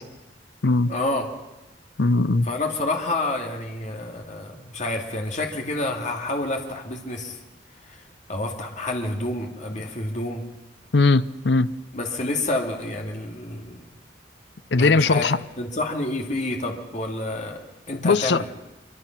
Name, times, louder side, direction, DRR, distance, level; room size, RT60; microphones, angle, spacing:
voice 1, 0.9-1.3 2.4-7.4 7.9-8.0 8.3-10.4 11.9-13.8 14.7-15.3 15.6-17.6 17.9-18.5, left 2 dB, 45° left, 2.3 m, -28 dB
voice 2, 2.0-2.5 10.9-11.7 14.7-15.4 18.0-18.4, left 3 dB, 70° left, 0.7 m, -19 dB
24.5 x 24.5 x 5.9 m
head